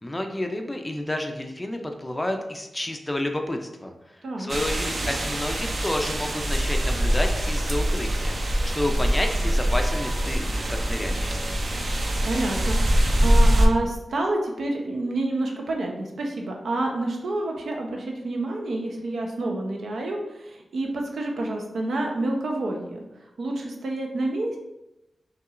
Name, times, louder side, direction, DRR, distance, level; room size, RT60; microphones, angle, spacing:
voice 1, 0.0-3.9 4.4-11.3, left 1 dB, 15° left, 4 dB, 0.4 m, -30 dB
sound 1, 4.5-13.7, equal, 45° right, 0.5 m, -23 dB
voice 2, 12.2-23.0 23.4-24.6, right 2 dB, 85° right, 0 dB, 0.7 m, -28 dB
5.7 x 3.0 x 2.5 m, 0.94 s
wide cardioid pair, 180°, 0 cm